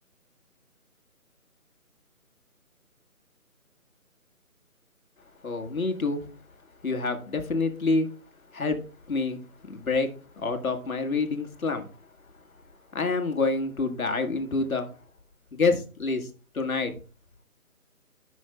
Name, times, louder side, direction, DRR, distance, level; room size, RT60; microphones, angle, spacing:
voice 1, 5.4-6.2 6.8-8.1 8.5-8.8 9.1-9.4 9.7-10.1 10.4-11.9 12.9-14.9 15.5-16.3 16.5-16.9, left 3 dB, 70° left, 1.7 m, -27 dB
13.0 x 6.3 x 2.2 m
figure-of-eight pair, 175°, 44 cm